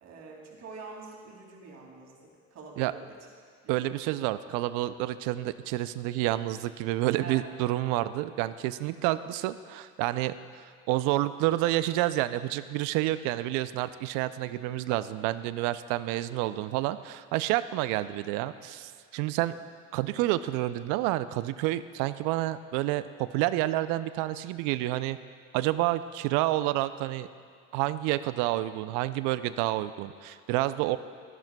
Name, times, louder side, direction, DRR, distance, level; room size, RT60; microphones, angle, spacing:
voice 1, 0.0-3.2 3.6-3.8 7.2-7.4, right 4 dB, 50° right, -1 dB, 2.5 m, -45 dB
voice 2, 3.7-10.3 10.6-19.6 19.9-25.2 25.5-27.3 27.7-31.0, right 15 dB, 70° right, 14 dB, 0.5 m, -29 dB
13.5 x 10.5 x 2.3 m, 2.2 s
supercardioid pair, 85°, 33 cm